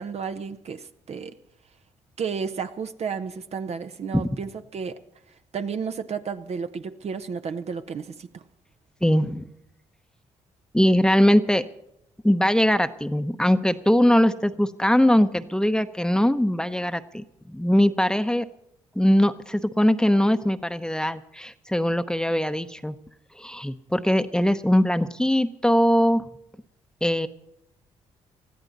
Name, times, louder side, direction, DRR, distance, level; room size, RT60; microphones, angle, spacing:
voice 1, 0.0-1.4 2.2-5.0 5.5-8.4, right 6 dB, 55° right, 9 dB, 0.8 m, -32 dB
voice 2, 9.0-9.5 10.7-11.6 12.2-18.5 19.0-22.9 23.4-26.2 27.0-27.3, equal, 5° left, 10 dB, 0.8 m, -21 dB
20.0 x 14.0 x 4.1 m, 0.81 s
supercardioid pair, 50°, 13 cm